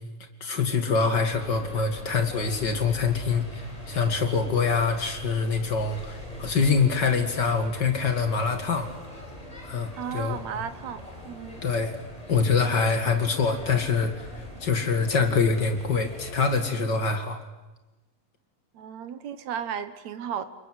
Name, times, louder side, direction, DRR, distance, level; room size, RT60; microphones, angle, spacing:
voice 1, 0.4-8.9 9.6-10.4 11.6-11.9 12.3-17.4, left 5 dB, 35° left, 7 dB, 2.0 m, -25 dB
sound 1, 1.3-16.6, equal, 10° left, 6.4 m, -42 dB
voice 2, 10.0-11.6 18.7-20.4, right 8 dB, 65° right, 12 dB, 2.0 m, -34 dB
29.0 x 23.0 x 8.0 m, 1.1 s
omnidirectional pair, 4.2 m